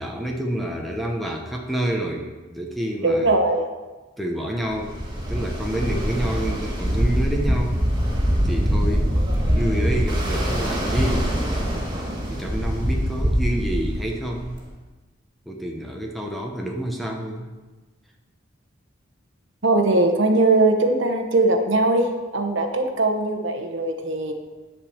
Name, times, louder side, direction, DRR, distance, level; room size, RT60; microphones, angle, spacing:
voice 1, 0.0-3.3 4.2-5.0 5.3-7.9 8.4-9.1 9.6-11.3 12.3-14.6 15.5-17.5, right 1 dB, ahead, 0 dB, 0.9 m, -28 dB
voice 2, 3.0-3.7 19.6-24.3, right 2 dB, 60° right, 4 dB, 1.1 m, -20 dB
Ocean, 4.7-14.6, equal, 20° right, 2.0 m, -23 dB
10.5 x 5.1 x 7.2 m, 1.3 s
head